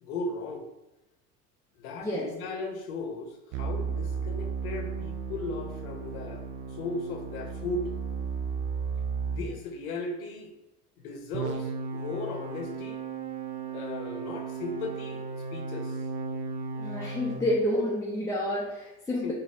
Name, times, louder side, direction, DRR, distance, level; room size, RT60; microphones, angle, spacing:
voice 1, 0.0-0.7 1.8-7.9 9.2-10.5 11.0-13.0 13.7-15.2 15.5-16.1 19.2-19.3, left 3 dB, 65° left, 4 dB, 0.8 m, -36 dB
sound 1, 3.5-9.5 11.3-17.4, right 5 dB, 40° right, 0.6 m, -34 dB
voice 2, 16.8-19.3, left 1 dB, 5° left, -6 dB, 0.6 m, -29 dB
4.0 x 2.6 x 3.5 m, 0.96 s
figure-of-eight pair, 65°, 46 cm